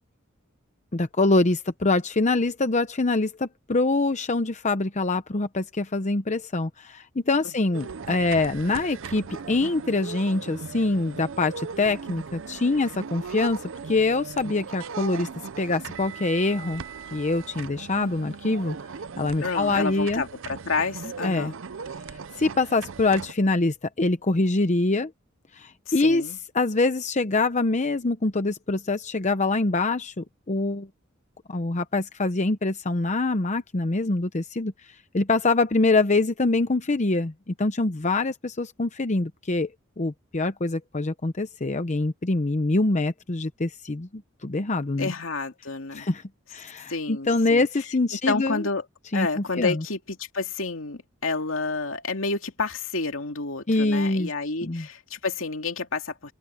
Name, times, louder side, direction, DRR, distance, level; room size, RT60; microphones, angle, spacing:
voice 1, 0.9-15.3 15.6-16.8 17.1-18.8 19.2-20.2 21.2-21.5 22.4-25.1 25.5-26.2 26.5-30.9 31.5-39.7 40.0-45.1 45.9-46.2 46.5-48.7 49.1-49.8 53.7-54.3 54.6-54.9, left 2 dB, 35° left, 0.8 m, -24 dB
sound 1, 7.7-23.3, right 5 dB, 70° right, 0.6 m, -38 dB
voice 2, 19.4-21.6 25.9-26.4 45.0-46.1 46.9-47.7 48.3-48.8 49.1-56.3, left 3 dB, 75° left, 2.6 m, -29 dB
head